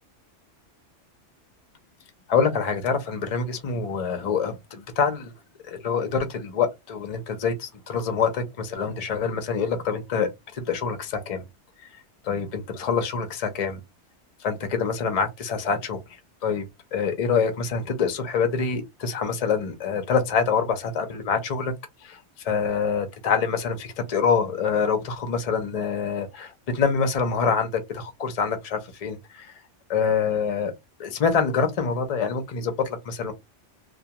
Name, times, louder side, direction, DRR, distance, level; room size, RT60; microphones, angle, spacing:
voice 1, 2.3-5.3 5.7-11.4 12.2-13.8 14.4-16.0 16.4-16.7 16.9-21.7 22.0-22.2 22.4-29.5 29.9-30.7 31.0-33.3, left 6 dB, 45° left, 0.5 m, -25 dB
2.2 x 2.2 x 2.8 m
omnidirectional pair, 1.3 m